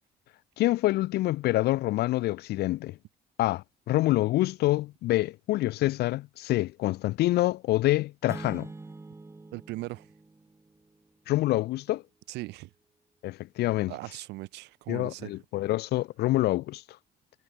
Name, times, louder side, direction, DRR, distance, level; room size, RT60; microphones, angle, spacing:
voice 1, 0.6-3.0 3.4-8.7 11.3-12.0 13.2-13.9 14.9-16.8, left 17 dB, 75° left, 0.7 m, -26 dB
sound 1, 8.3-11.1, right 3 dB, 15° right, 4.2 m, -44 dB
voice 2, 9.5-10.1 12.3-12.7 13.9-15.4, right 20 dB, 90° right, 1.7 m, -39 dB
cardioid pair, 110°, 17 cm